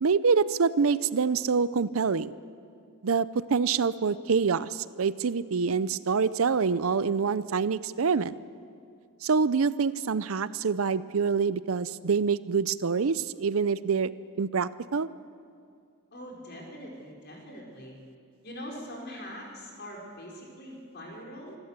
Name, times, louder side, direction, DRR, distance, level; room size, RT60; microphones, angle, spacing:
voice 1, 0.0-2.3 3.0-8.3 9.2-14.1 14.4-15.1, right 5 dB, 70° right, 17 dB, 0.6 m, -26 dB
voice 2, 16.1-18.0 18.4-21.6, equal, 50° left, -1 dB, 4.7 m, -42 dB
26.5 x 12.5 x 8.2 m, 2.3 s
head